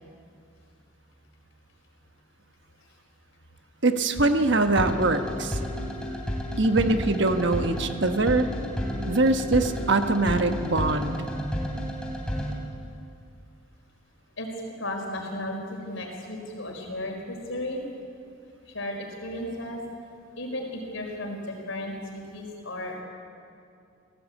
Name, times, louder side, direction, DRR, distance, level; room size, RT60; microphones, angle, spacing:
voice 1, 3.8-5.6 6.6-8.5 9.1-11.3, right 2 dB, 60° right, 7 dB, 1.3 m, -23 dB
sound 1, 4.3-12.5, equal, 5° left, 3.1 m, -32 dB
voice 2, 14.8-17.8 18.7-19.8 20.4-23.0, left 1 dB, 70° left, 1 dB, 4.7 m, -34 dB
23.5 x 17.0 x 8.5 m, 2.5 s
head